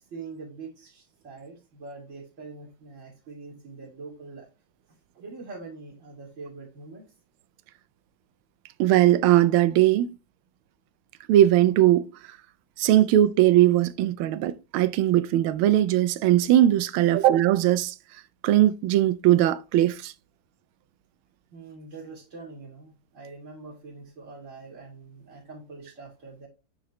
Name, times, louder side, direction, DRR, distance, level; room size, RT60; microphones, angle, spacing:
voice 1, 0.1-4.5 5.1-7.0 21.5-26.5, right 4 dB, 35° right, 2.9 m, -43 dB
voice 2, 8.8-10.1 11.3-12.1 12.8-17.9 18.4-20.1, right 13 dB, 80° right, 1.4 m, -20 dB
9.6 x 3.9 x 3.0 m
omnidirectional pair, 2.3 m